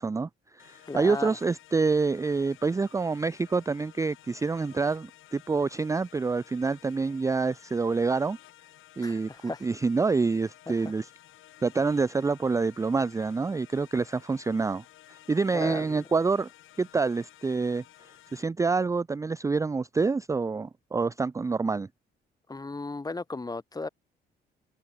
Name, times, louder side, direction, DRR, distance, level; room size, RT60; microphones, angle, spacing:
voice 1, 0.0-8.4 9.0-11.1 11.6-16.5 16.8-17.8 18.3-21.9, right 4 dB, 15° right, 0.4 m, -27 dB
sound 1, 0.6-18.4, left 14 dB, 85° left, 6.2 m, -54 dB
voice 2, 0.9-1.4 9.0-9.6 10.7-10.9 15.5-16.1 22.5-23.9, left 3 dB, 20° left, 1.6 m, -36 dB
cardioid pair, 90°, 20 cm